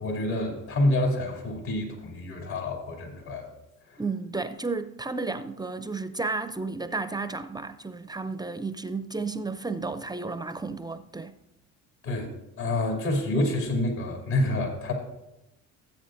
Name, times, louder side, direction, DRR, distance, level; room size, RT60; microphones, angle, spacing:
voice 1, 0.0-3.5 3.9-4.0 12.0-14.9, left 1 dB, 75° left, 2.8 m, -28 dB
voice 2, 4.0-11.3, right 3 dB, 10° right, 0.4 m, -32 dB
16.5 x 8.0 x 2.6 m
hypercardioid pair, 65°, 41 cm